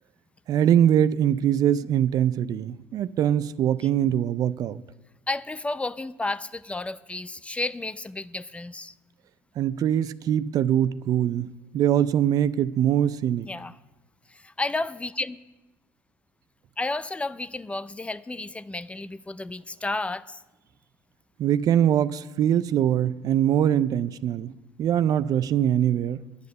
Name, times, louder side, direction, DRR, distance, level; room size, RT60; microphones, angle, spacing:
voice 1, 0.5-4.8 9.6-13.5 21.4-26.2, right 10 dB, 60° right, 15 dB, 0.4 m, -23 dB
voice 2, 5.3-8.9 13.5-13.7 14.3-15.4 16.8-20.4, left 2 dB, 15° left, 15 dB, 0.5 m, -32 dB
9.6 x 8.3 x 6.6 m, 1.1 s
supercardioid pair, 65°, 7 cm